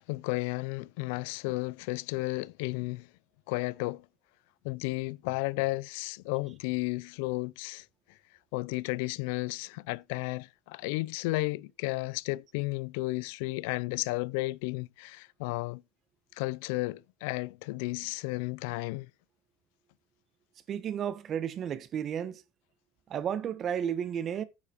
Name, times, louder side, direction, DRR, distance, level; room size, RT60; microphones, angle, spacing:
voice 1, 0.0-3.1 3.5-4.1 4.6-7.8 8.5-15.8 16.4-19.1, left 23 dB, 85° left, 0.4 m, -33 dB
voice 2, 20.7-22.4 23.1-24.4, right 9 dB, 35° right, 1.1 m, -32 dB
9.8 x 7.1 x 4.4 m
cardioid pair, 160°, 0 cm